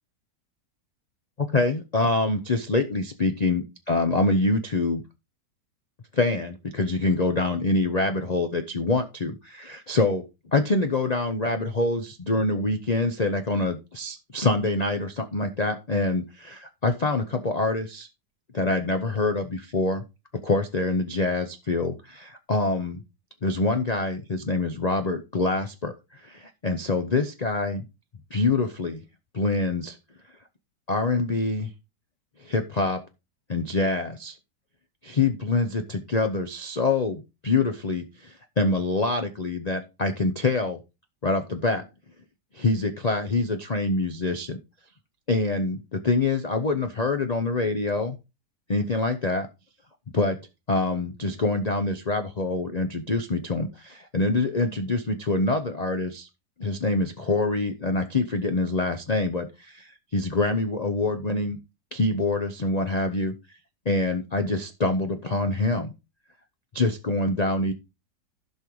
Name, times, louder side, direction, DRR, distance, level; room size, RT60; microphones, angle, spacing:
voice 1, 1.4-5.0 6.1-18.1 18.5-20.0 20.4-23.0 23.4-27.9 28.3-29.0 29.3-30.0 30.9-31.7 32.4-33.0 33.5-34.3 35.0-40.8 41.2-41.8 42.5-44.6 45.3-48.2 48.7-49.5 50.1-50.4 50.7-56.3 56.6-61.6 61.9-63.3 63.9-65.9 66.7-67.7, left 3 dB, 55° left, 6 dB, 0.4 m, -25 dB
15.5 x 5.5 x 3.1 m, 0.26 s
omnidirectional pair, 1.8 m